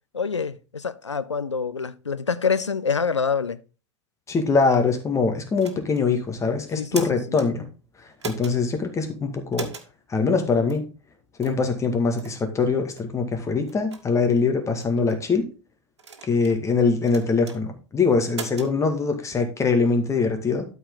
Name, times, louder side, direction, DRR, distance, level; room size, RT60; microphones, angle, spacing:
voice 1, 0.1-3.6 6.8-7.2, left 5 dB, 85° left, 0.6 m, -26 dB
voice 2, 4.3-7.7 8.2-9.7 10.1-10.8 11.4-15.4 16.3-20.7, left 4 dB, 20° left, 2.1 m, -23 dB
sound 1, 5.6-6.1 6.7-7.5 8.2-8.6 9.5-9.9 10.7-10.8 11.4-11.6 12.2-12.4 13.0-13.1 13.7-14.0 14.8-15.2 16.0-16.6 17.1-17.6 18.3-18.7, right 4 dB, 75° right, 1.6 m, -37 dB
12.5 x 4.8 x 3.9 m
figure-of-eight pair, 85°, 15 cm